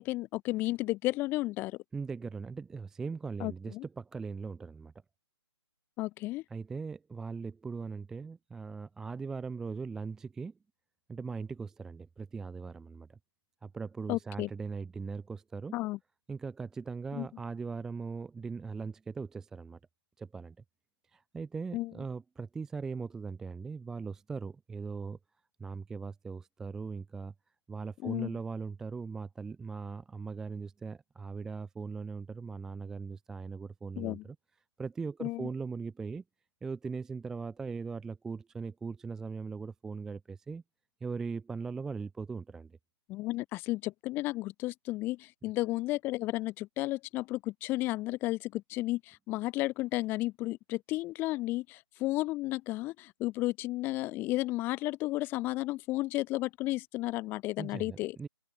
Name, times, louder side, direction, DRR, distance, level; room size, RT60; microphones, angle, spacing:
voice 1, 0.0-1.8 3.4-3.8 6.0-6.4 14.1-14.5 15.7-16.0 17.1-17.3 21.7-21.9 28.0-28.3 34.0-34.2 35.2-35.5 43.1-58.2, left 18 dB, 15° left, 0.8 m, -33 dB
voice 2, 1.9-4.9 6.5-10.6 11.1-13.2 13.6-15.7 16.3-19.8 20.2-20.6 21.1-25.2 25.6-27.3 27.7-34.4 34.8-36.2 36.6-40.6 41.0-42.8 57.6-58.3, right 5 dB, 5° right, 0.4 m, -39 dB
open air
hypercardioid pair, 150°, 14 cm